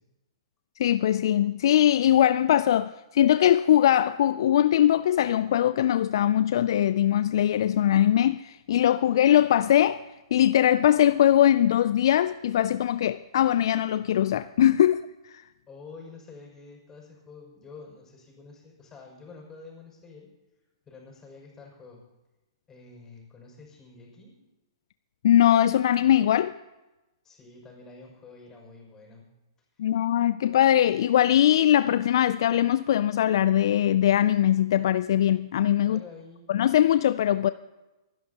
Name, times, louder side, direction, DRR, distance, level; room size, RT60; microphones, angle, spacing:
voice 1, 0.8-10.0 10.3-15.0 25.2-26.5 29.8-36.0 36.5-37.5, left 11 dB, 60° left, 0.3 m, -21 dB
voice 2, 15.7-20.3 20.9-22.0 22.7-24.4 27.2-29.3 35.8-36.5, left 4 dB, 20° left, 6.0 m, -48 dB
26.0 x 11.0 x 2.9 m
hypercardioid pair, 120°, 3 cm